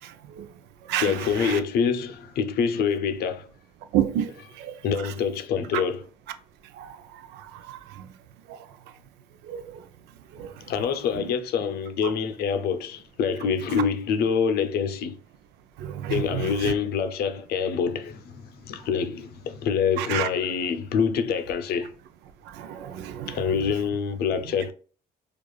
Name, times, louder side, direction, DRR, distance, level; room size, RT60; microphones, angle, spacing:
voice 1, 1.0-3.5 4.8-6.1 10.4-15.2 16.1-21.9 23.3-24.7, left 6 dB, 70° left, 0.5 m, -26 dB
voice 2, 3.9-4.3 4.6-4.7 6.8-6.9 7.7-7.8 9.5-9.6 10.4-10.5 15.8-16.4 20.0-20.3 22.6-23.3, right 11 dB, 85° right, 0.5 m, -28 dB
4.7 x 2.4 x 2.3 m
cardioid pair, 110°, 17 cm